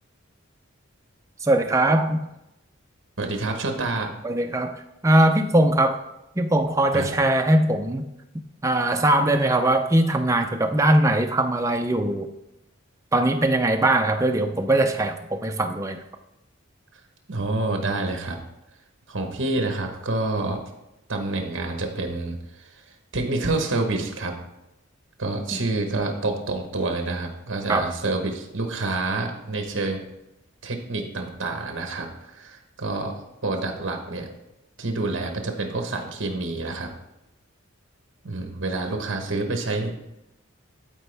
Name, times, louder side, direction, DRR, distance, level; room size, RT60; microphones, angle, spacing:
voice 1, 1.4-2.2 4.2-6.0 6.4-8.0 8.6-12.3 13.1-16.0 25.5-25.6 27.7-27.9, right 1 dB, 15° right, 5 dB, 0.5 m, -21 dB
voice 2, 3.2-4.1 6.9-7.1 17.3-18.4 19.1-20.6 21.1-22.7 23.1-24.3 25.2-30.0 30.6-34.3 34.8-36.9 38.2-40.1, right 2 dB, 60° right, 4 dB, 1.1 m, -28 dB
12.5 x 4.3 x 3.4 m, 0.91 s
head